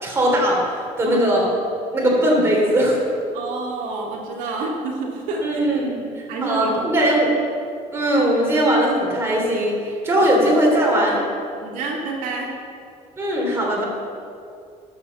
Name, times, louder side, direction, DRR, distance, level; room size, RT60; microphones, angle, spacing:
voice 1, 0.0-0.6 1.0-1.5 1.9-3.0 5.4-7.3 7.9-9.8 10.0-11.2 13.2-13.8, right 1 dB, 20° right, -3 dB, 3.0 m, -19 dB
voice 2, 3.3-5.6 6.3-6.9 10.1-10.2 11.6-12.5, right 3 dB, 80° right, -1 dB, 2.3 m, -28 dB
13.0 x 7.4 x 7.0 m, 2.4 s
cardioid pair, 150°, 13 cm